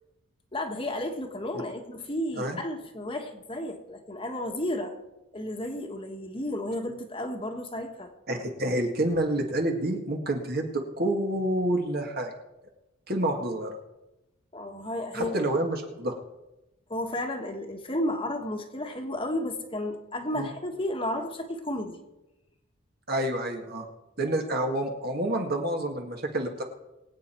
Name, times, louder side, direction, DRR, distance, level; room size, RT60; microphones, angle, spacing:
voice 1, 0.5-5.0 5.3-8.1 14.5-15.3 16.9-22.0, left 1 dB, 25° left, 3 dB, 1.5 m, -32 dB
voice 2, 8.3-12.3 13.1-13.8 15.1-16.2 20.3-20.5 23.1-23.9 24.2-26.6, right 1 dB, 45° right, 3 dB, 1.9 m, -28 dB
23.0 x 8.9 x 4.5 m, 0.95 s
head